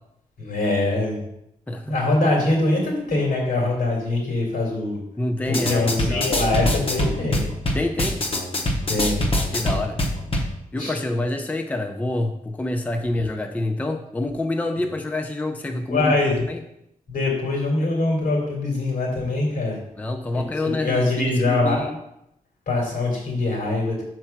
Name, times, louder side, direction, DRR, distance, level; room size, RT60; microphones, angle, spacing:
voice 1, 0.4-1.2 1.8-5.0 5.5-7.5 8.9-9.2 10.8-10.9 15.9-16.3 17.1-19.8 20.3-21.8 22.7-24.0, left 2 dB, 75° left, -1 dB, 3.1 m, -23 dB
voice 2, 1.7-2.0 5.2-6.4 7.7-8.2 9.5-10.0 10.7-16.2 16.5-16.6 20.0-22.0, left 2 dB, 10° left, 5 dB, 0.4 m, -27 dB
sound 1, 5.5-10.5, left 1 dB, 40° left, 0.9 m, -24 dB
6.6 x 4.5 x 5.9 m, 0.80 s
wide cardioid pair, 160°, 15 cm